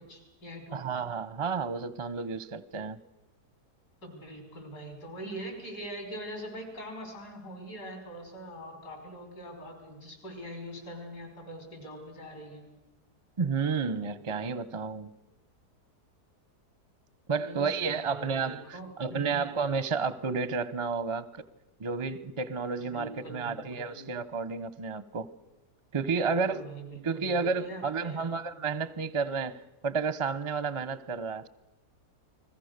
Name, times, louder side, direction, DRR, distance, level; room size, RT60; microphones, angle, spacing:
voice 1, 0.0-0.8 4.0-12.7 17.3-19.5 22.8-24.1 26.1-28.3, equal, 75° left, 6.1 m, -43 dB
voice 2, 0.7-3.0 13.4-15.1 17.3-21.3 21.8-25.3 25.9-26.6 27.0-31.5, right 5 dB, 35° right, 0.5 m, -31 dB
29.5 x 21.0 x 6.6 m
omnidirectional pair, 1.7 m